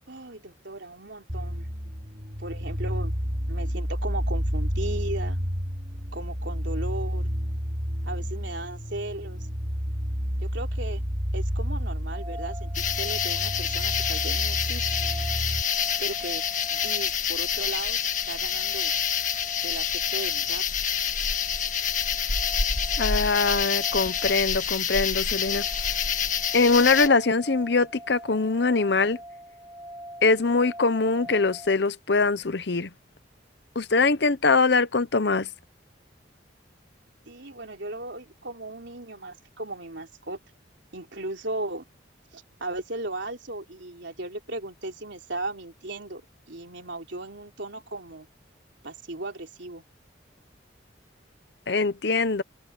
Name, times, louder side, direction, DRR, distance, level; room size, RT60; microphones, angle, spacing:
voice 1, 0.1-1.7 2.4-3.1 3.5-5.4 6.1-7.3 8.0-9.5 10.4-11.1 11.3-14.9 16.0-16.4 16.7-18.0 18.3-18.9 19.6-19.9 20.1-20.6 37.3-40.4 40.9-41.9 42.3-46.2 46.5-48.3 48.8-49.8, right 2 dB, 70° right, 3.3 m, -36 dB
sound 1, 1.3-15.6, equal, 40° right, 4.5 m, -30 dB
sound 2, 12.1-31.8, equal, 15° right, 6.1 m, -43 dB
sound 3, 12.7-27.1, left 8 dB, 40° left, 1.7 m, -27 dB
voice 2, 23.0-25.6 26.5-29.2 30.2-32.9 33.8-35.5 51.7-52.4, left 4 dB, 60° left, 0.8 m, -22 dB
open air
head